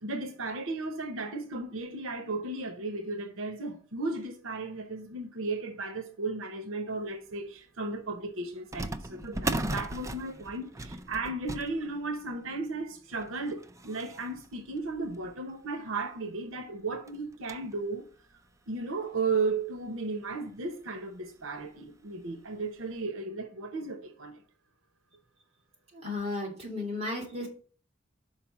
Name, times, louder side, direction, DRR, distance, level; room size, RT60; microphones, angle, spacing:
voice 1, 0.0-18.1 18.7-24.4, right 3 dB, 90° right, 0.8 m, -35 dB
sound 1, 7.3-7.4 8.7-15.6 16.2-16.3 16.5-16.7 17.1-17.8 18.3-18.4 19.2-19.3 19.7-19.8 21.2-21.5 21.9-22.0 22.6-22.8, right 2 dB, 15° right, 0.4 m, -38 dB
voice 2, 25.9-27.5, left 2 dB, 30° right, 2.8 m, -34 dB
5.8 x 4.7 x 5.9 m
head